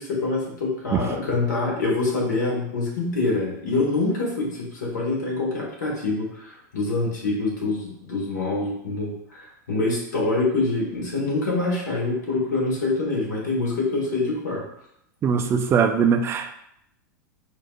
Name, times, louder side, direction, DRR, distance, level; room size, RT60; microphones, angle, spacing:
voice 1, 0.0-14.6, left 3 dB, 75° left, -3 dB, 1.1 m, -25 dB
voice 2, 15.2-16.5, right 6 dB, 25° right, 6 dB, 0.4 m, -21 dB
4.5 x 2.4 x 2.3 m, 0.75 s
hypercardioid pair, 90°, 10 cm